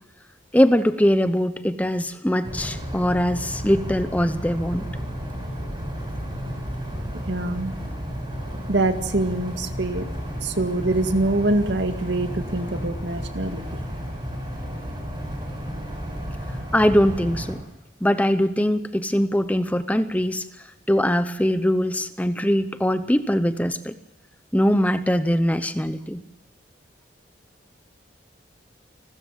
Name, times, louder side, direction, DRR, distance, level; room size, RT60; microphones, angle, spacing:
voice 1, 0.5-4.9 16.7-17.6 18.0-23.9 24.5-26.2, equal, 10° left, 12 dB, 0.7 m, -22 dB
sound 1, 2.4-17.5, equal, 25° right, 8.0 m, -32 dB
voice 2, 7.3-7.7 8.7-10.1 10.4-13.6, right 2 dB, 70° right, 8 dB, 1.8 m, -24 dB
29.5 x 13.5 x 7.4 m, 0.97 s
head